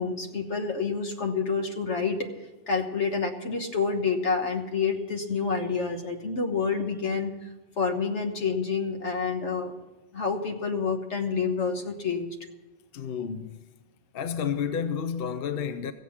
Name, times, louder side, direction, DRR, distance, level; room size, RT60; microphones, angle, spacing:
voice 1, 0.0-2.3 2.7-7.5 7.8-9.7 10.1-12.3, left 5 dB, 80° left, 1.6 m, -28 dB
voice 2, 12.9-13.6 14.1-15.9, left 7 dB, 60° left, 0.8 m, -30 dB
15.5 x 8.2 x 7.2 m
omnidirectional pair, 1.2 m